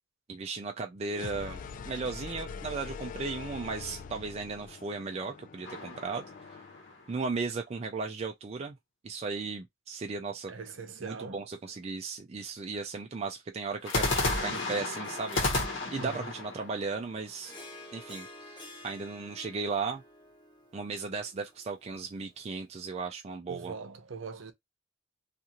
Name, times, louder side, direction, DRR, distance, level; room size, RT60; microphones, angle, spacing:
voice 1, 0.3-6.3 7.1-8.7 9.0-10.5 11.0-17.5 17.9-20.0 20.7-23.7, right 4 dB, 30° right, 0.3 m, -36 dB
sound 1, 1.1-6.9, left 5 dB, 40° left, 0.4 m, -44 dB
sound 2, 5.6-7.1 13.9-17.8, left 2 dB, 65° left, 1.1 m, -32 dB
voice 2, 10.5-11.5 15.9-16.3 23.5-24.5, right 4 dB, 65° right, 0.7 m, -41 dB
Harp, 13.8-22.4, left 2 dB, 20° left, 0.8 m, -50 dB
2.5 x 2.5 x 2.9 m
head